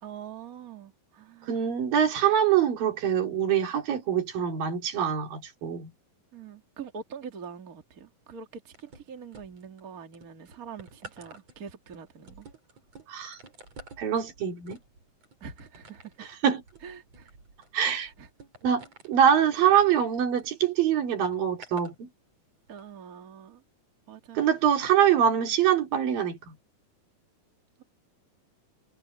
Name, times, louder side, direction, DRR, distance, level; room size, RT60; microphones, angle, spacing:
voice 1, 0.0-1.5 6.3-12.5 15.4-16.1 16.8-17.3 17.9-18.3 22.7-23.6 24.1-24.5, right 6 dB, 30° right, 2.2 m, -44 dB
voice 2, 1.4-5.9 13.1-13.4 14.0-14.8 16.2-16.6 17.7-18.1 18.6-22.1 24.3-26.6, right 9 dB, 85° right, 4.6 m, -24 dB
sound 1, 8.7-9.8 10.1-20.5 21.3-21.9 22.7-22.8, right 3 dB, 50° right, 6.5 m, -51 dB
omnidirectional pair, 3.9 m